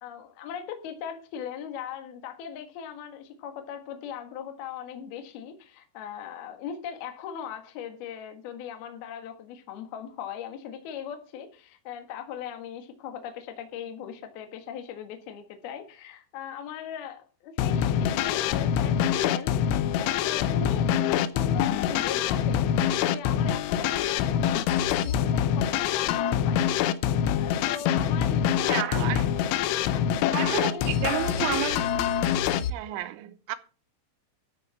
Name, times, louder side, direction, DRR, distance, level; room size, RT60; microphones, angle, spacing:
voice 1, 0.0-19.6 20.0-22.7 23.1-26.8 27.4-29.1 29.9-30.0 30.4-30.9, left 8 dB, 60° left, 3.2 m, -39 dB
sound 1, 17.6-32.7, left 9 dB, 80° left, 3.1 m, -25 dB
voice 2, 28.6-29.3 30.3-31.9 32.7-33.6, right 14 dB, 80° right, 3.2 m, -31 dB
13.5 x 6.7 x 5.9 m
omnidirectional pair, 5.6 m